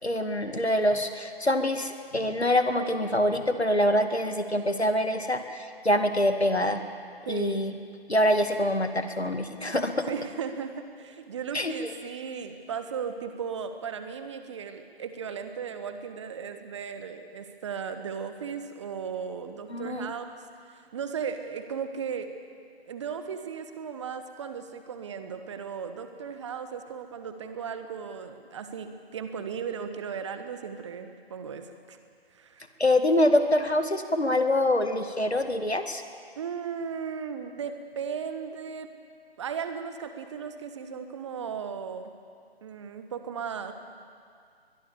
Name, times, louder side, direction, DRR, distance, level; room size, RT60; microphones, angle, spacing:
voice 1, 0.0-6.8 7.3-7.7 8.1-10.1 11.5-11.7 19.7-20.1 32.8-36.0, left 1 dB, 85° left, 7 dB, 2.1 m, -25 dB
voice 2, 7.2-7.6 10.1-20.4 20.7-22.3 22.9-32.0 32.3-32.6 36.4-38.9 39.4-42.1 42.6-43.7, right 6 dB, 30° right, 8 dB, 1.3 m, -36 dB
22.5 x 22.0 x 7.2 m, 2.2 s
figure-of-eight pair, 140°, 32 cm